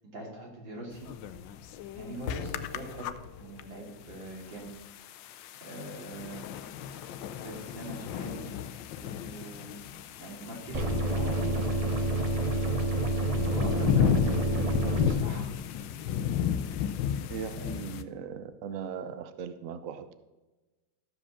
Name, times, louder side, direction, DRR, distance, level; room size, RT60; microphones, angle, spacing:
voice 1, 0.1-1.1 2.0-3.1 3.4-4.7 5.6-6.5 7.4-8.7 9.0-9.7 10.2-11.7 13.5-15.9 17.6-17.7, right 1 dB, 85° right, -2 dB, 3.5 m, -42 dB
sound 1, 0.9-18.0, left 9 dB, 85° left, 1.3 m, -34 dB
sound 2, 10.7-15.1, right 1 dB, 35° right, 0.6 m, -28 dB
voice 2, 17.3-20.1, right 7 dB, 60° right, 11 dB, 0.9 m, -39 dB
13.5 x 5.1 x 7.1 m, 1.1 s
omnidirectional pair, 2.0 m